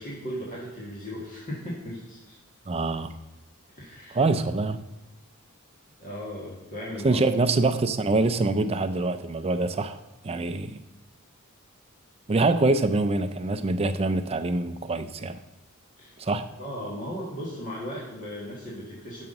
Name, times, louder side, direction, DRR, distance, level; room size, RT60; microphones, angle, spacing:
voice 1, 0.0-2.4 3.7-4.2 6.0-7.2 16.0-16.1 16.6-19.3, equal, 35° left, -6 dB, 1.6 m, -37 dB
voice 2, 2.7-3.1 4.1-4.8 7.0-10.0 10.2-10.8 12.3-15.4 16.2-16.5, right 3 dB, 25° right, 9 dB, 0.4 m, -25 dB
5.8 x 5.5 x 6.4 m, 1.0 s
head